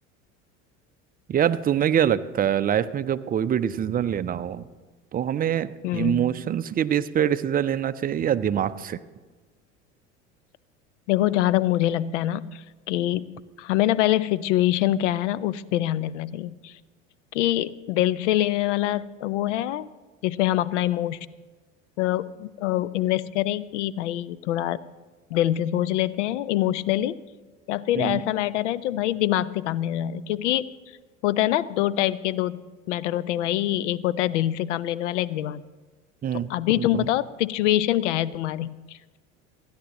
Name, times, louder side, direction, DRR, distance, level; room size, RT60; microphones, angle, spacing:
voice 1, 1.3-4.7 5.1-9.0 27.9-28.2 36.2-36.5 36.8-37.1, right 9 dB, 25° right, 13 dB, 0.6 m, -24 dB
voice 2, 5.8-6.3 11.1-13.2 13.6-16.7 17.3-19.9 20.2-21.2 22.0-24.8 25.3-27.2 27.7-30.7 31.2-32.6 32.9-35.6 36.3-39.2, left 14 dB, 70° left, 18 dB, 0.6 m, -25 dB
29.5 x 10.5 x 3.0 m, 1.3 s
hypercardioid pair, 75°, 38 cm